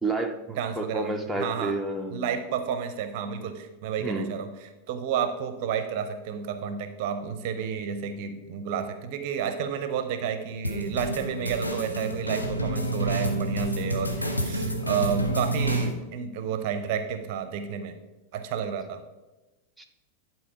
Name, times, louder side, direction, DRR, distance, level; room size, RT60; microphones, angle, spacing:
voice 1, 0.0-2.3 4.0-4.3 19.8-19.9, right 2 dB, ahead, 2 dB, 0.8 m, -30 dB
voice 2, 0.6-1.8 2.1-4.5 4.9-17.9 18.3-19.0, right 7 dB, 45° right, 9 dB, 0.7 m, -31 dB
sound 1, 10.6-15.9, right 1 dB, 85° left, 1.0 m, -28 dB
11.0 x 4.3 x 4.7 m, 1.1 s
figure-of-eight pair, 90°, 0 cm